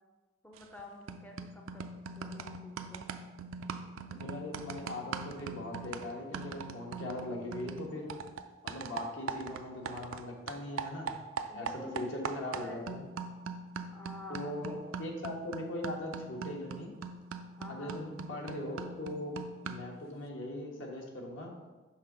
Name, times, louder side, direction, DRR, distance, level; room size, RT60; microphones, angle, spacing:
voice 1, 0.4-3.1 11.5-12.9 13.9-14.8 17.6-18.0, left 1 dB, 10° left, 1 dB, 0.5 m, -49 dB
sound 1, 0.6-0.8 1.1-10.2 10.5-20.0, right 5 dB, 85° right, 0.4 m, -41 dB
voice 2, 4.2-8.1 8.6-11.1 11.5-11.7 11.9-13.0 14.3-16.9 17.7-19.3 19.6-21.5, left 1 dB, 70° left, 0 dB, 1.3 m, -40 dB
6.6 x 3.6 x 5.5 m, 1.3 s
head